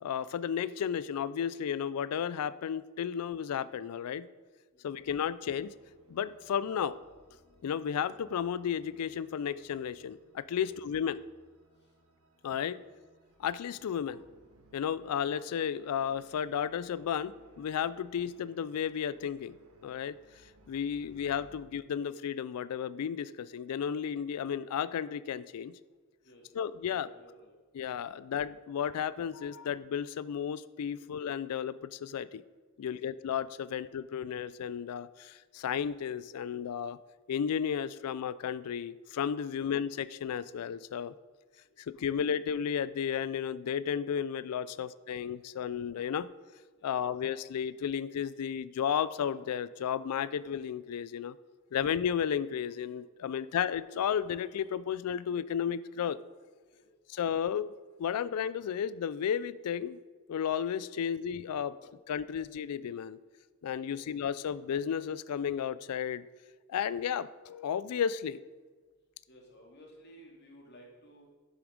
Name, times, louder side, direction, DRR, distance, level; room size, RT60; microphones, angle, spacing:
voice 1, 0.0-4.3 4.8-5.7 6.1-7.0 7.6-11.2 12.4-12.8 13.4-14.3 14.7-19.6 19.8-20.2 20.7-25.7 26.5-27.1 27.7-32.4 32.8-37.0 37.3-41.1 41.8-46.3 46.8-51.3 51.7-56.2 57.1-57.7 58.0-60.0 60.3-61.8 62.1-63.2 63.6-66.2 66.7-68.4, left 8 dB, 85° left, 18 dB, 0.4 m, -33 dB
sound 1, 5.0-21.6, right 1 dB, 80° right, 1.4 m, -63 dB
voice 2, 26.8-27.5 32.8-32.9 35.6-35.7 39.5-39.7 41.6-41.8 44.6-44.8 46.8-47.0 53.3-53.4 56.7-56.9 61.8-62.0 63.8-64.0 69.3-71.4, equal, 50° left, -1 dB, 2.4 m, -57 dB
11.0 x 7.1 x 5.1 m, 1.4 s
head